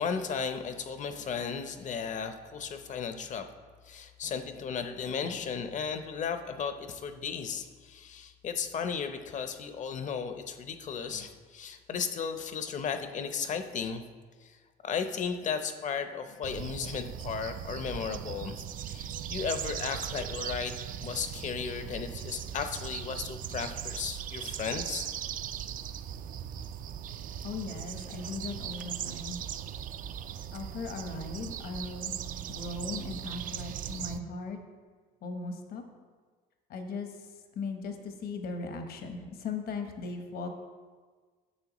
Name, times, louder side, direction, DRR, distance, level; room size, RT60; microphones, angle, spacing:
voice 1, 0.0-3.4 3.9-14.0 14.4-14.6 14.8-25.1, left 6 dB, 45° left, 8 dB, 0.7 m, -35 dB
sound 1, 16.4-34.2, right 9 dB, 55° right, 0.4 m, -39 dB
voice 2, 27.4-29.5 30.5-32.2 32.5-34.6 35.2-35.8 36.7-37.2 37.5-40.5, left 4 dB, 65° left, 5 dB, 1.0 m, -38 dB
9.7 x 6.7 x 3.0 m, 1.5 s
cardioid pair, 110°, 17 cm